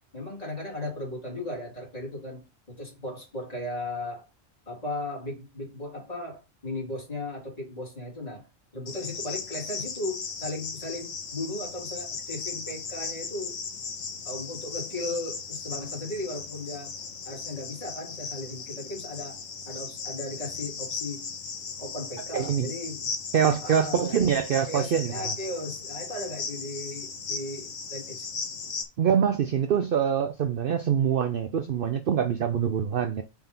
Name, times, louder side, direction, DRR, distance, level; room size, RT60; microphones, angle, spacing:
voice 1, 0.1-4.3 4.7-8.5 8.7-13.6 14.2-21.3 21.8-23.1 23.4-24.2 24.7-28.2, left 1 dB, 30° left, 3.3 m, -36 dB
Cricket, 8.9-28.8, left 5 dB, 80° left, 1.4 m, -37 dB
voice 2, 22.3-22.7 23.3-25.1 29.0-33.2, right 8 dB, 55° right, 0.6 m, -24 dB
5.7 x 4.3 x 5.4 m
omnidirectional pair, 1.3 m